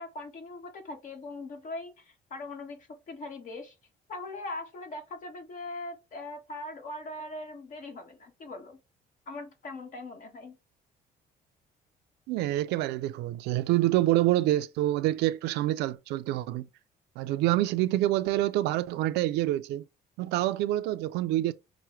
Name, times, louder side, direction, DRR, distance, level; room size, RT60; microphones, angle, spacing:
voice 1, 0.0-3.7 4.1-8.8 9.3-10.6, left 2 dB, 50° left, 1.4 m, -41 dB
voice 2, 12.3-16.7 17.2-19.8 20.2-21.5, right 15 dB, 85° right, 0.4 m, -27 dB
5.7 x 2.2 x 3.1 m
cardioid pair, 110°, 17 cm